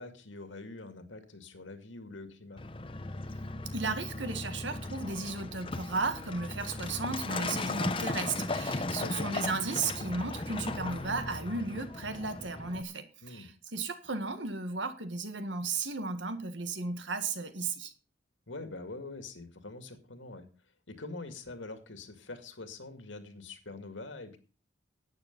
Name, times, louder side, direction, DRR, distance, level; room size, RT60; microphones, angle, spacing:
voice 1, 0.0-2.6 8.9-9.3 13.2-13.5 18.5-20.5 20.9-24.4, left 3 dB, 85° left, 8 dB, 2.2 m, -44 dB
Truck, 2.6-12.8, left 2 dB, 25° left, 0.8 m, -37 dB
voice 2, 3.7-17.9, right 4 dB, 75° right, 10 dB, 1.7 m, -35 dB
12.0 x 9.1 x 5.3 m, 0.35 s
head